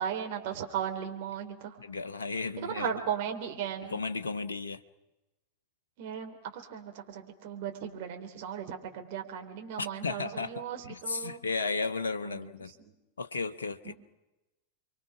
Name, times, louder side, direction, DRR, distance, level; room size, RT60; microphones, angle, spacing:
voice 1, 0.0-1.8 2.6-4.0 6.0-11.4 12.2-12.9 13.8-13.9, right 8 dB, 50° right, 4 dB, 3.8 m, -37 dB
voice 2, 1.8-2.9 3.9-4.8 9.8-12.7 13.2-13.9, left 4 dB, 70° left, 10 dB, 0.9 m, -34 dB
29.5 x 23.5 x 5.9 m, 1.1 s
figure-of-eight pair, 90°, 0 cm